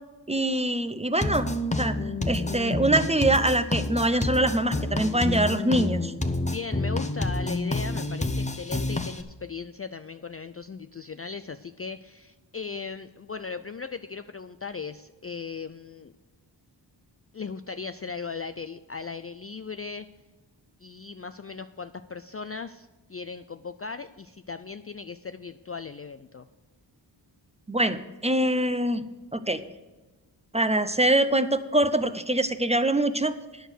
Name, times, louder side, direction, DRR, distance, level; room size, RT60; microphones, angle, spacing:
voice 1, 0.3-1.5 1.7-2.0 2.3-6.1 27.7-29.0 29.3-29.6 30.5-33.4, right 1 dB, 15° right, 11 dB, 0.6 m, -24 dB
sound 1, 1.2-9.2, left 2 dB, 15° left, 0.9 m, -28 dB
voice 2, 6.4-16.1 17.3-20.1 20.8-26.5, left 5 dB, 35° left, 10 dB, 0.4 m, -38 dB
10.0 x 6.4 x 8.0 m, 1.2 s
wide cardioid pair, 90°, 46 cm